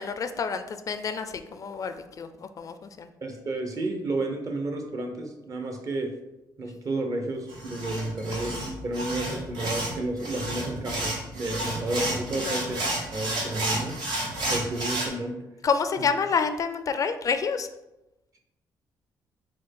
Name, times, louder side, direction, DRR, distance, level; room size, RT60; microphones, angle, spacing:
voice 1, 0.0-3.1 12.4-12.6 15.6-17.7, left 5 dB, 45° left, 9 dB, 0.4 m, -28 dB
voice 2, 3.2-6.1 6.6-12.8 13.1-15.4 16.0-16.1, right 2 dB, 45° right, 4 dB, 0.8 m, -31 dB
sound 1, 7.5-15.1, right 1 dB, 80° right, 1.2 m, -31 dB
4.3 x 2.3 x 4.6 m, 0.95 s
cardioid pair, 75°, 8 cm